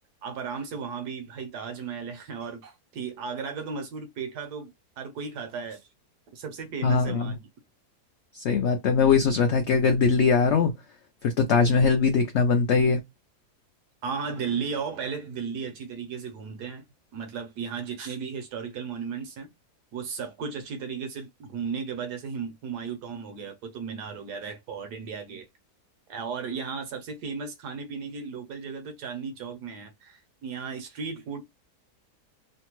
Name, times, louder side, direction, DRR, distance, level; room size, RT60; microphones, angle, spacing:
voice 1, 0.2-5.9 6.3-7.5 14.0-16.8 17.1-19.5 19.9-25.5 26.1-31.4, right 6 dB, 80° right, 1.3 m, -35 dB
voice 2, 6.8-7.4 8.3-10.7 11.2-13.0, left 5 dB, 80° left, 0.6 m, -21 dB
3.2 x 2.1 x 3.0 m
omnidirectional pair, 1.7 m